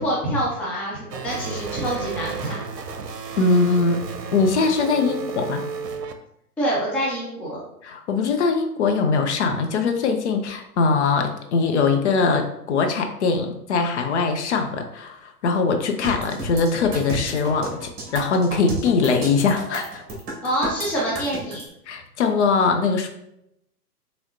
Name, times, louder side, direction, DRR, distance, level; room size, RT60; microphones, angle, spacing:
voice 1, 0.0-2.6 6.6-7.6 20.4-21.6, equal, 5° left, -6 dB, 0.5 m, -26 dB
sound 1, 1.1-6.1, right 5 dB, 80° right, 0.7 m, -32 dB
voice 2, 3.4-4.0 4.3-5.6 7.8-20.0 21.9-23.1, left 4 dB, 45° left, 5 dB, 0.7 m, -21 dB
sound 2, 16.0-21.6, right 2 dB, 25° right, 1.6 m, -32 dB
5.9 x 3.2 x 2.7 m, 0.79 s
figure-of-eight pair, 115°, 48 cm